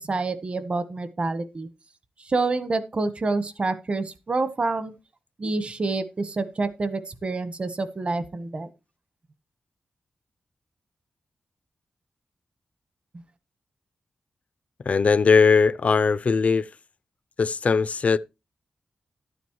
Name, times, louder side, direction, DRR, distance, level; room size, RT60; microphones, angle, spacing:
voice 1, 0.0-1.7 2.2-4.9 5.4-8.7, right 3 dB, 40° right, 1.1 m, -27 dB
voice 2, 14.9-16.7 17.4-18.2, left 5 dB, 50° left, 0.5 m, -19 dB
12.5 x 9.2 x 3.1 m
wide cardioid pair, 100°, 3 cm